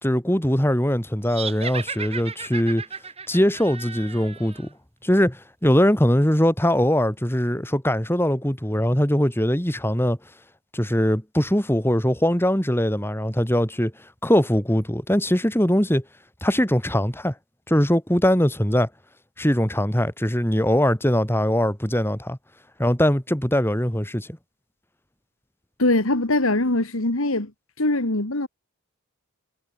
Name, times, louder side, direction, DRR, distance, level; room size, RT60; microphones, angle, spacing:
voice 1, 0.0-2.8 3.3-4.7 5.0-10.2 10.7-13.9 14.2-16.0 16.4-17.3 17.7-18.9 19.4-22.4 22.8-24.3, equal, 10° left, 2.9 m, -21 dB
sound 1, 1.3-4.7, right 5 dB, 25° right, 5.0 m, -35 dB
voice 2, 25.8-27.5 27.8-28.5, left 2 dB, 70° left, 2.4 m, -22 dB
head